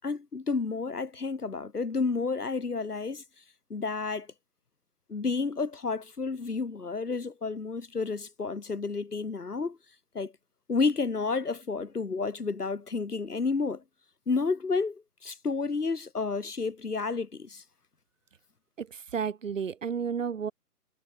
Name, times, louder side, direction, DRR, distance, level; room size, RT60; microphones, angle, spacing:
voice 1, 0.0-3.2 3.7-4.3 5.1-9.8 10.1-10.3 10.7-13.8 14.3-17.6, left 4 dB, 70° left, 7.4 m, -31 dB
voice 2, 18.8-20.5, right 6 dB, 50° right, 6.0 m, -32 dB
figure-of-eight pair, 145°, 48 cm